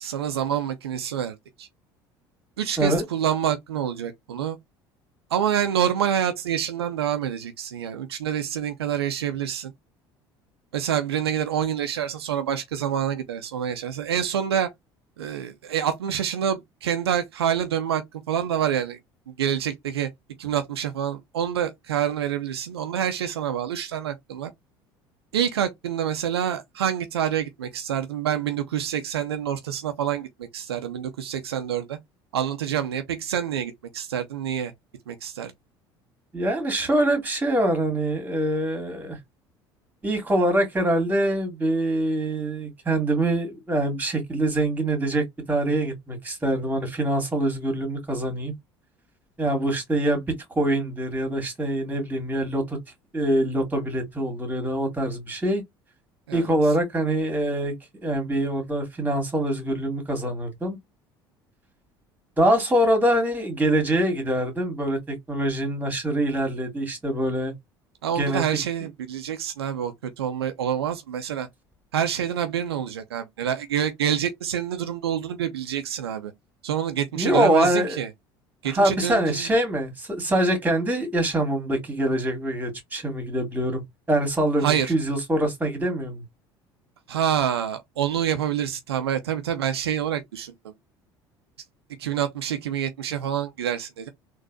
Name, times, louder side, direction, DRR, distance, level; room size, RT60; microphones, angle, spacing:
voice 1, 0.0-1.7 2.6-4.6 5.3-9.7 10.7-14.7 15.2-19.0 19.4-20.1 20.4-24.5 25.3-32.0 32.3-34.7 35.1-35.5 56.3-56.5 68.0-71.5 71.9-76.3 76.6-78.1 78.6-79.5 84.6-84.9 87.1-90.7 92.0-94.1, right 9 dB, 80° right, 0.5 m, -27 dB
voice 2, 36.3-39.2 40.0-48.5 49.4-50.3 50.6-52.8 53.1-55.6 56.3-57.7 58.0-60.8 62.4-67.5 68.2-68.4 77.1-78.0 78.7-83.8 84.1-86.2, right 1 dB, 15° right, 1.9 m, -24 dB
3.8 x 2.6 x 2.6 m
hypercardioid pair, 65°, 13 cm